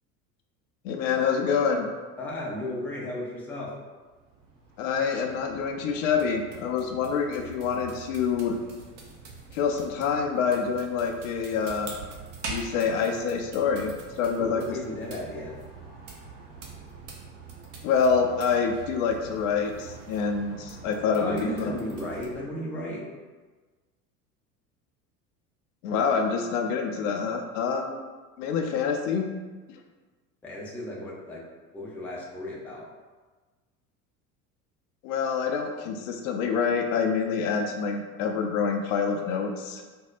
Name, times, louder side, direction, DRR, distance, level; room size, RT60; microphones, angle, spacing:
voice 1, 0.8-1.9 4.8-8.6 9.5-11.9 12.5-13.9 14.2-14.8 17.8-21.7 25.8-28.0 28.4-29.3 35.0-39.8, left 6 dB, 55° left, 4 dB, 0.5 m, -26 dB
voice 2, 2.2-3.7 14.3-15.5 21.2-23.0 30.4-31.4 31.7-32.9, left 1 dB, 5° left, -4 dB, 0.4 m, -34 dB
sound 1, 3.9-22.4, right 4 dB, 50° right, 0.8 m, -44 dB
4.4 x 2.0 x 2.4 m, 1.3 s
figure-of-eight pair, 80°, 45 cm